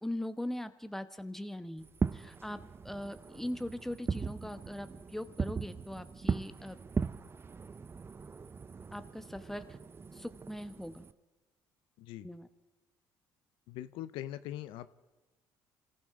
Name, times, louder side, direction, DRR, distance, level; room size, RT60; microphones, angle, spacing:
voice 1, 0.0-1.8 2.1-6.8 8.9-9.6 10.1-11.1 12.2-12.5, left 1 dB, 5° left, 10 dB, 1.0 m, -40 dB
Fireworks, 1.8-11.1, right 5 dB, 25° right, 0.5 m, -39 dB
voice 2, 13.7-14.9, left 13 dB, 80° left, 14 dB, 0.6 m, -41 dB
27.0 x 15.0 x 3.6 m, 1.2 s
supercardioid pair, 75°, 9 cm